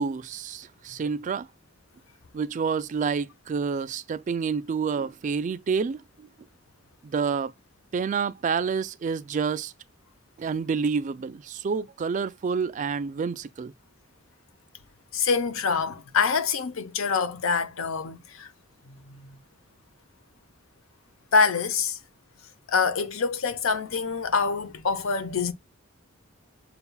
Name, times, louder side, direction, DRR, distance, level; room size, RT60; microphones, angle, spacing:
voice 1, 0.0-1.5 2.3-6.3 7.0-7.5 7.9-9.7 10.4-13.7, right 5 dB, 40° right, 0.3 m, -28 dB
voice 2, 15.1-18.5 18.9-19.4 21.3-22.0 22.7-25.5, left 5 dB, 85° left, 0.6 m, -25 dB
6.7 x 2.3 x 2.2 m
head